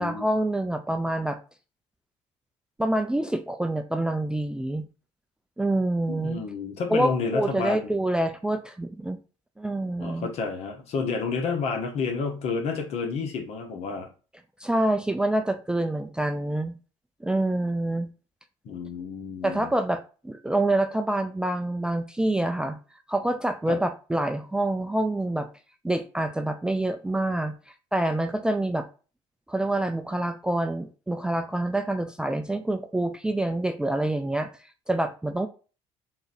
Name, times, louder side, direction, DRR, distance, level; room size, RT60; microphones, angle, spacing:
voice 1, 0.0-1.4 2.8-4.8 5.6-6.4 6.9-9.2 9.6-10.3 14.6-16.8 17.2-18.1 19.4-22.8 23.1-25.5 25.8-27.5 27.9-28.9 29.5-34.5 34.9-35.5, right 1 dB, 5° right, 8 dB, 0.3 m, -26 dB
voice 2, 6.1-7.9 10.0-14.1 18.6-19.7 23.7-23.8, left 5 dB, 60° left, 4 dB, 1.1 m, -30 dB
3.9 x 2.7 x 4.0 m, 0.35 s
cardioid pair, 115°, 12 cm